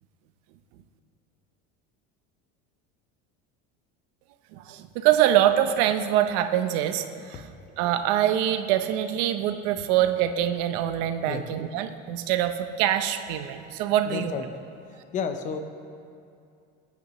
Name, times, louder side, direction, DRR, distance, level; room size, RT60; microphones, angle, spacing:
voice 1, 4.5-7.4 7.8-14.3, right 11 dB, 60° right, 9 dB, 0.7 m, -24 dB
voice 2, 14.1-14.4 15.1-15.6, left 6 dB, 25° left, 7 dB, 0.6 m, -30 dB
20.5 x 9.2 x 3.0 m, 2.5 s
cardioid pair, 175°, 29 cm